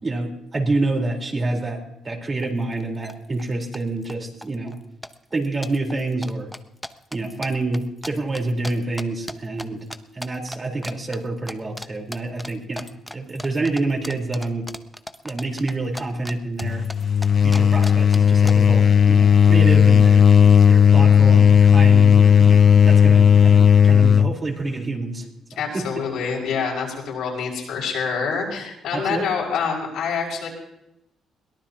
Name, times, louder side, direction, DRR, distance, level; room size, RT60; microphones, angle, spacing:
voice 1, 0.0-4.7 5.3-6.5 7.1-9.8 10.1-14.7 15.2-16.8 17.4-20.3 20.7-26.0 28.9-29.3, right 2 dB, 30° right, 0 dB, 4.2 m, -27 dB
sound 1, 2.4-2.5 2.7-3.1 3.4-4.1 4.4-4.8 5.0-9.6 9.9-10.6 10.8-11.2 11.5-11.9 12.1-16.3 16.6-18.5, equal, 5° left, 0.9 m, -36 dB
sound 2, 16.6-24.4, left 8 dB, 45° left, 0.5 m, -14 dB
voice 2, 25.6-30.5, left 6 dB, 80° left, -2 dB, 5.8 m, -26 dB
22.5 x 17.5 x 3.0 m, 0.87 s
cardioid pair, 90°, 0 cm